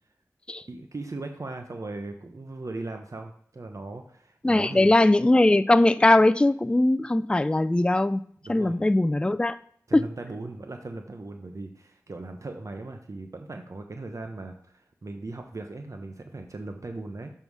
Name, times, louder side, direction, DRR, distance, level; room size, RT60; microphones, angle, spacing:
voice 1, 0.7-4.9 8.4-8.8 9.9-17.3, right 2 dB, 60° right, 5 dB, 0.8 m, -38 dB
voice 2, 4.4-8.2 8.5-9.6 9.9-10.0, left 2 dB, 15° left, 13 dB, 0.3 m, -20 dB
6.8 x 5.5 x 4.7 m, 0.62 s
cardioid pair, 45°, 6 cm